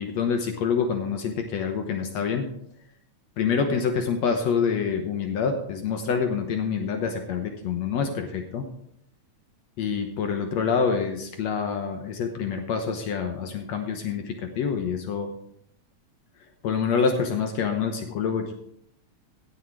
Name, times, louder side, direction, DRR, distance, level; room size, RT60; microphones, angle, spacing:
voice 1, 0.0-2.4 3.4-8.6 9.8-15.3 16.6-18.5, left 6 dB, 70° left, 5 dB, 2.1 m, -26 dB
17.0 x 6.5 x 4.6 m, 0.73 s
omnidirectional pair, 3.3 m